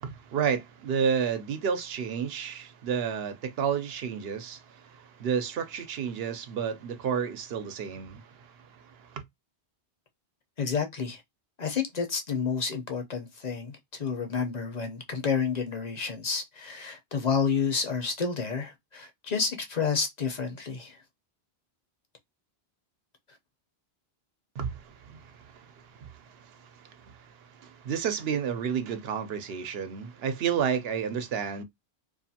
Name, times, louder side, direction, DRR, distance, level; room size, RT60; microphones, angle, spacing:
voice 1, 0.0-9.2 24.6-31.6, right 7 dB, 70° right, 0.8 m, -31 dB
voice 2, 10.6-11.2 11.6-21.0, left 5 dB, 45° left, 0.7 m, -30 dB
2.4 x 2.4 x 2.7 m
omnidirectional pair, 1.1 m